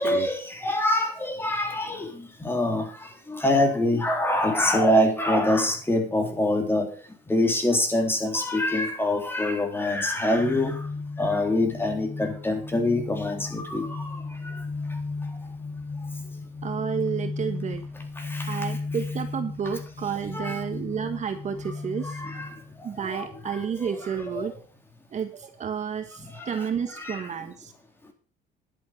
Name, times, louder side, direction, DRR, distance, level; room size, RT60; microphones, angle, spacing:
voice 1, 0.0-6.9 7.3-10.8 11.2-14.2 18.2-18.7 20.3-20.6 22.0-22.5 23.0-24.5 26.2-26.7 27.0-27.2, left 1 dB, 15° left, 4 dB, 3.6 m, -25 dB
sound 1, 10.3-23.4, left 3 dB, 30° left, 1.9 m, -35 dB
voice 2, 16.6-17.8 18.5-22.2 22.8-24.5 25.1-27.7, right 7 dB, 45° right, 8 dB, 1.6 m, -31 dB
11.5 x 7.9 x 6.5 m, 0.38 s
cardioid pair, 110°, 17 cm